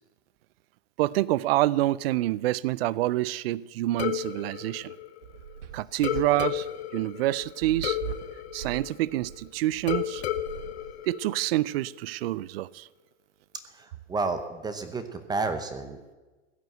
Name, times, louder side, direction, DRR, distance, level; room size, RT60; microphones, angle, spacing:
voice 1, 1.0-4.9 5.7-6.7 6.9-8.0 8.5-10.2 11.1-12.9, right 16 dB, 55° right, 0.5 m, -27 dB
sound 1, 4.0-5.6 6.0-9.4 9.9-11.8, left 12 dB, 60° left, 1.2 m, -33 dB
sound 2, 4.7-11.3, right 9 dB, 75° right, 1.3 m, -40 dB
voice 2, 13.6-16.1, right 3 dB, 10° right, 0.9 m, -31 dB
16.0 x 9.4 x 7.8 m
hypercardioid pair, 140°, 36 cm